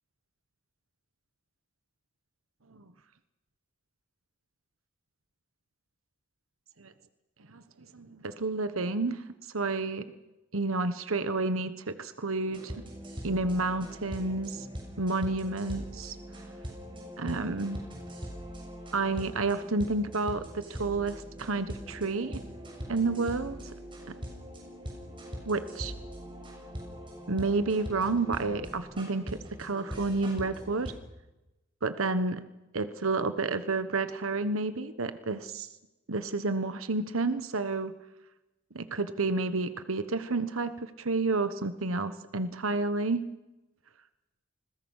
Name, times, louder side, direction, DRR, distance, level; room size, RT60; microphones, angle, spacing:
voice 1, 7.9-9.2 9.5-10.0 10.5-12.7 13.2-14.7 15.0-16.2 17.2-17.8 18.9-22.4 22.9-23.6 25.5-25.9 27.3-30.9 31.8-32.4 32.7-35.7 36.1-37.9 38.7-43.2, right 3 dB, 85° right, 11 dB, 1.2 m, -30 dB
sound 1, 12.5-30.9, equal, 25° right, 6.6 m, -42 dB
29.0 x 21.5 x 6.5 m, 1.0 s
head